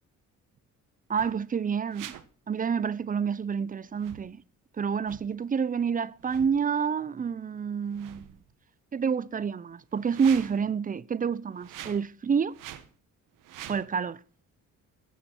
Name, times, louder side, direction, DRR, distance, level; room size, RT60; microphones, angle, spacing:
voice 1, 1.1-2.1 2.5-4.4 4.8-8.3 8.9-12.6 13.7-14.2, right 6 dB, 25° right, 0.5 m, -28 dB
sound 1, 1.2-1.4 1.9-2.2 3.9-4.3 5.0-5.2 6.2-6.6 7.7-8.5 9.9-10.7 11.6-12.1 12.5-12.9 13.4-13.8, right 11 dB, 90° right, 1.2 m, -44 dB
15.0 x 8.3 x 4.4 m
cardioid pair, 110°, 31 cm